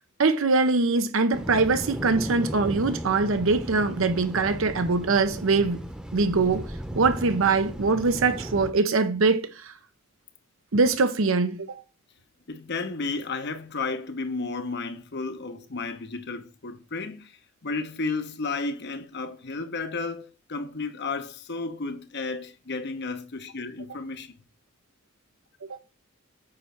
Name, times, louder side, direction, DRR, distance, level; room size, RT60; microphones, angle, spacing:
voice 1, 0.2-5.8 6.1-6.7 6.9-9.7 10.7-11.7, right 3 dB, 70° right, 0.7 m, -23 dB
sound 1, 1.3-8.7, right 1 dB, 5° right, 0.9 m, -36 dB
voice 2, 12.5-24.3, left 3 dB, 55° left, 1.0 m, -33 dB
8.6 x 3.2 x 5.7 m
head